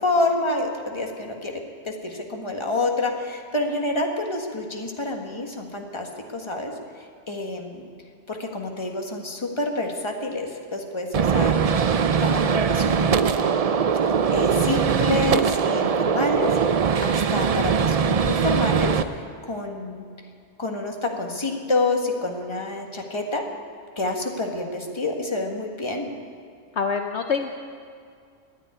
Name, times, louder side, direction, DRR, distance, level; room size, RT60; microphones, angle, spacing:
voice 1, 0.0-7.9 8.3-13.6 14.0-20.1 20.6-23.5 24.0-26.1, left 2 dB, 20° left, 2 dB, 1.5 m, -28 dB
Gunshot gunfire, 11.1-19.0, right 6 dB, 65° right, 0.3 m, -21 dB
voice 2, 26.8-27.6, left 5 dB, 65° left, 5 dB, 1.0 m, -25 dB
14.0 x 10.5 x 9.8 m, 2.2 s
omnidirectional pair, 1.3 m